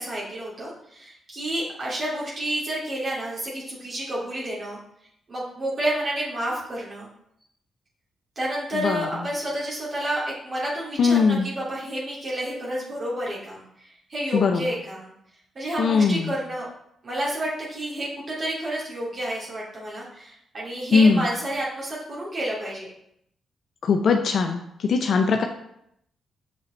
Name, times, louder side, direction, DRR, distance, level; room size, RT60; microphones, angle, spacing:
voice 1, 0.0-4.8 5.3-7.1 8.4-15.1 15.5-16.7 17.0-22.9, right 1 dB, 50° right, -6 dB, 2.4 m, -30 dB
voice 2, 8.7-9.1 11.0-11.5 14.3-14.7 15.8-16.3 20.9-21.3 23.8-25.4, left 5 dB, 65° left, 4 dB, 0.6 m, -20 dB
6.8 x 5.5 x 3.2 m, 0.74 s
hypercardioid pair, 45°, 0 cm